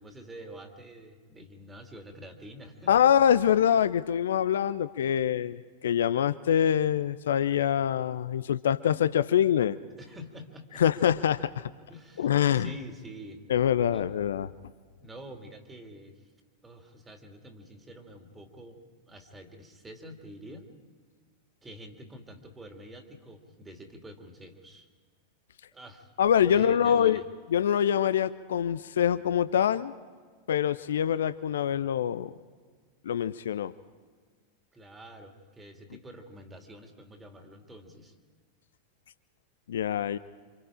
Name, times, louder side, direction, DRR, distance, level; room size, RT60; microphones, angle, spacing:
voice 1, 0.0-3.1 10.0-10.8 11.9-13.4 13.9-14.0 15.0-16.2 16.6-20.7 21.6-24.9 25.7-26.1 26.5-27.3 34.7-38.2, equal, 15° right, 4 dB, 2.5 m, -47 dB
voice 2, 2.9-9.8 10.8-11.7 12.2-12.7 13.5-14.5 26.2-27.2 27.5-29.9 30.5-32.3 33.0-33.7 39.7-40.2, left 9 dB, 65° left, 15 dB, 0.6 m, -25 dB
28.0 x 26.5 x 5.0 m, 1.5 s
figure-of-eight pair, 90°, 0 cm